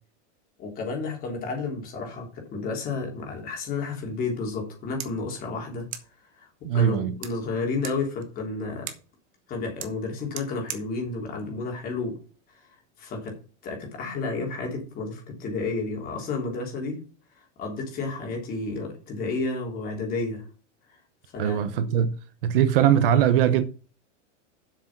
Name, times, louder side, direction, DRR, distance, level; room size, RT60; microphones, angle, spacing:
voice 1, 0.6-5.8 6.4-6.5 6.7-8.9 9.5-12.2 13.0-13.3 13.6-17.0 17.6-20.4 21.3-21.9, left 3 dB, 25° left, 3.4 m, -31 dB
sound 1, 4.6-12.6, right 10 dB, 25° right, 1.1 m, -44 dB
voice 2, 6.6-7.2 21.4-22.2 22.4-23.6, right 9 dB, 50° right, 0.9 m, -21 dB
7.8 x 6.6 x 6.0 m
supercardioid pair, 170°, 36 cm